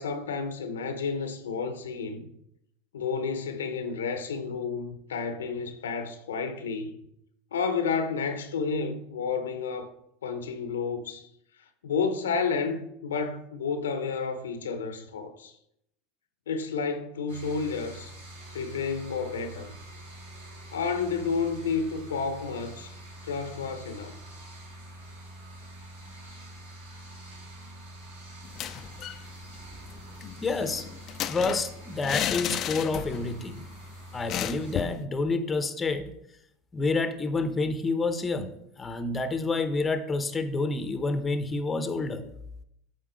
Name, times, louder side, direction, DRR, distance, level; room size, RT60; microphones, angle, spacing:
voice 1, 0.0-2.2 2.9-7.0 7.5-9.9 10.2-11.3 11.8-15.5 16.5-18.1 18.5-19.8 20.7-22.9 23.2-24.2, left 5 dB, 85° left, 0.7 m, -31 dB
sound 1, 17.3-34.7, right 1 dB, 85° right, 2.4 m, -46 dB
sound 2, 28.4-29.2 29.5-29.6 29.9-33.4 33.6-33.8 34.3-35.0, left 11 dB, 45° left, 0.3 m, -33 dB
voice 2, 30.4-30.8 31.2-33.7 34.1-36.1 36.7-38.5 38.8-42.2, left 3 dB, 20° left, 0.7 m, -28 dB
8.0 x 4.0 x 3.8 m
hypercardioid pair, 90°, 0 cm